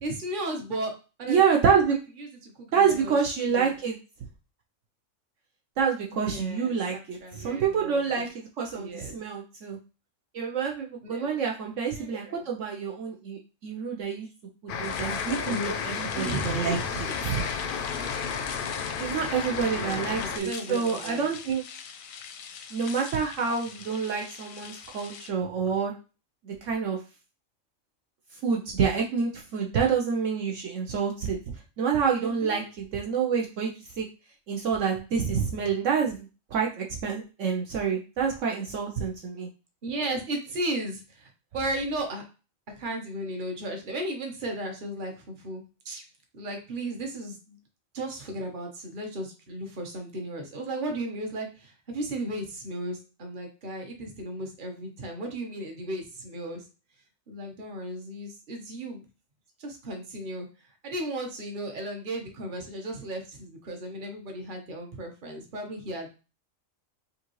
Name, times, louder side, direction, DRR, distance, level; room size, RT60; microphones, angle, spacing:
voice 1, 0.0-0.9 1.2-1.6 2.2-3.2 3.5-3.7 6.1-8.2 8.7-9.1 11.0-11.3 11.9-12.4 15.5-17.1 19.5-21.3 32.2-32.6 39.8-42.2 42.8-46.0 46.3-47.6 47.9-56.6 57.3-59.0 59.6-60.5 60.8-66.1, right 1 dB, 40° right, 3 dB, 1.1 m, -35 dB
voice 2, 1.3-2.0 2.7-4.0 5.8-9.8 10.3-14.3 14.8-15.6 15.9-17.4 19.0-21.6 22.7-25.9 26.4-27.0 28.4-31.4 31.8-33.7 34.0-34.1 34.5-39.5, right 6 dB, 70° right, 0 dB, 1.0 m, -27 dB
sound 1, 14.7-20.4, left 6 dB, 60° left, 0.6 m, -32 dB
sound 2, 14.8-25.3, left 7 dB, 85° left, 1.0 m, -42 dB
5.2 x 2.5 x 3.1 m, 0.32 s
omnidirectional pair, 1.4 m